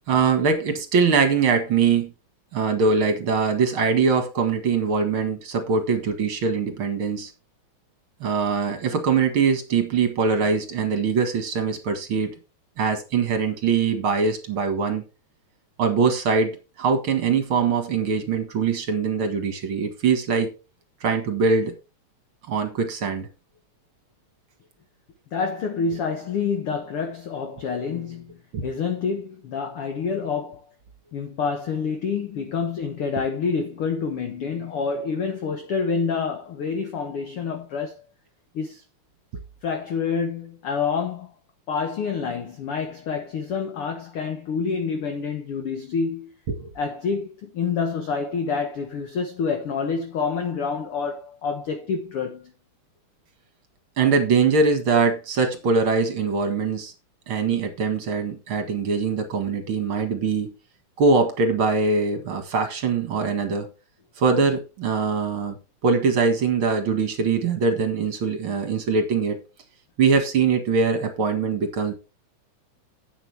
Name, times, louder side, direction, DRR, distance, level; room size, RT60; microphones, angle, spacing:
voice 1, 0.1-2.1 2.5-7.3 8.2-12.4 12.8-15.0 15.8-20.5 21.0-21.7 22.5-23.3 28.5-28.6 46.5-46.7 54.0-56.9 57.3-60.5 61.0-63.7 64.2-65.6 65.8-69.4 70.0-71.9, right 5 dB, 50° right, 2.1 m, -22 dB
voice 2, 25.3-30.6 31.1-38.0 38.5-38.8 39.6-41.3 41.7-46.3 46.7-52.5, left 5 dB, 55° left, 1.7 m, -27 dB
11.0 x 8.5 x 3.4 m
omnidirectional pair, 3.6 m